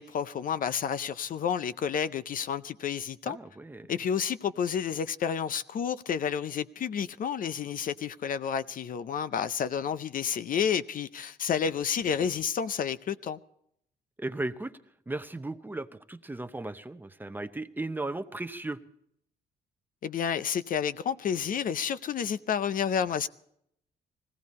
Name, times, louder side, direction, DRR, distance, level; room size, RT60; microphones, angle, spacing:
voice 1, 0.0-3.4 3.9-13.4 20.0-23.3, left 7 dB, 55° left, 0.5 m, -30 dB
voice 2, 3.3-3.9 14.2-14.8 15.1-18.8, right 2 dB, 10° right, 0.7 m, -36 dB
19.0 x 16.0 x 4.2 m
cardioid pair, 105°, 17 cm